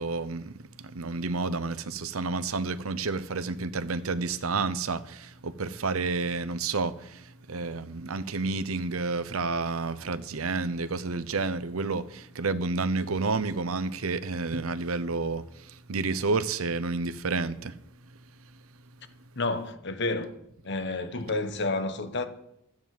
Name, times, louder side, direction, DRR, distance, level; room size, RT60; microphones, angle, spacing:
voice 1, 0.0-17.8, right 3 dB, 85° right, 0.8 m, -30 dB
voice 2, 19.4-20.3 20.6-22.3, left 3 dB, 55° left, 1.3 m, -30 dB
13.0 x 8.9 x 7.6 m
head